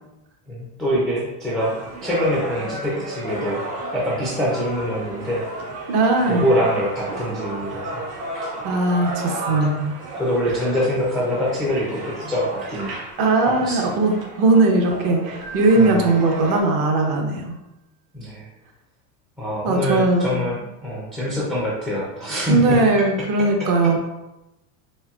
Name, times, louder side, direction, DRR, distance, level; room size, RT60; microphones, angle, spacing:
voice 1, 0.5-3.6 3.9-5.5 6.3-8.0 8.3-8.5 9.6-9.7 10.2-12.9 13.4-14.0 15.7-16.0 18.1-18.5 19.4-22.8 23.4-23.7, left 1 dB, ahead, -6 dB, 0.3 m, -24 dB
sound 1, 1.6-16.6, right 2 dB, 85° right, 1.4 m, -33 dB
voice 2, 5.9-6.5 8.6-9.9 13.2-17.6 19.6-20.3 22.5-24.0, right 2 dB, 45° right, 2 dB, 0.9 m, -19 dB
Keyboard (musical), 15.4-17.2, right 8 dB, 60° right, 1.2 m, -42 dB
4.3 x 3.6 x 2.3 m, 0.95 s
supercardioid pair, 135°, 47 cm